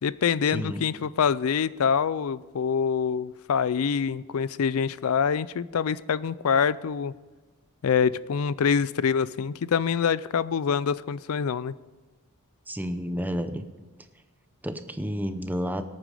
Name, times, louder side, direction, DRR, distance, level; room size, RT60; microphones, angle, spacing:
voice 1, 0.0-7.1 7.8-11.7, left 6 dB, 70° left, 19 dB, 0.4 m, -25 dB
voice 2, 0.5-0.9 12.7-13.6 14.6-15.8, equal, 10° right, 9 dB, 0.7 m, -30 dB
18.0 x 9.0 x 4.9 m, 1.2 s
head